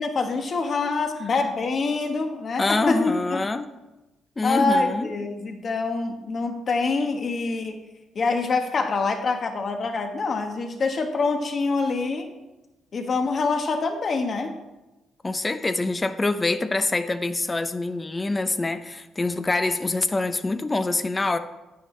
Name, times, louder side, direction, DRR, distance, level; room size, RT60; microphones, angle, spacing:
voice 1, 0.0-3.4 4.4-7.8 8.1-12.3 12.9-14.6, left 3 dB, 45° left, 1.2 m, -25 dB
voice 2, 2.6-3.7 4.4-5.1 15.2-21.4, left 2 dB, 20° left, 0.5 m, -25 dB
9.3 x 9.2 x 3.2 m
cardioid pair, 90°, 0 cm